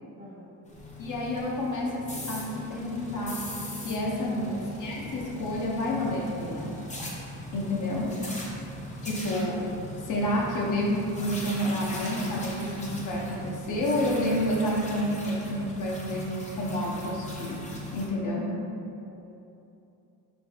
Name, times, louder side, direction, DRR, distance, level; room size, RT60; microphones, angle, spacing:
voice 1, 0.2-0.7 4.2-4.8 8.2-8.5 19.0-19.3, equal, 20° right, -3 dB, 0.7 m, -47 dB
sound 1, 0.7-18.1, left 1 dB, 20° left, 0.7 m, -39 dB
voice 2, 1.0-3.5 3.8-4.5 4.8-6.7 7.5-8.2 9.0-9.6 10.1-17.6 17.9-18.5, left 1 dB, 55° left, -3 dB, 0.9 m, -29 dB
4.5 x 3.2 x 2.8 m, 2.7 s
cardioid pair, 95°, 38 cm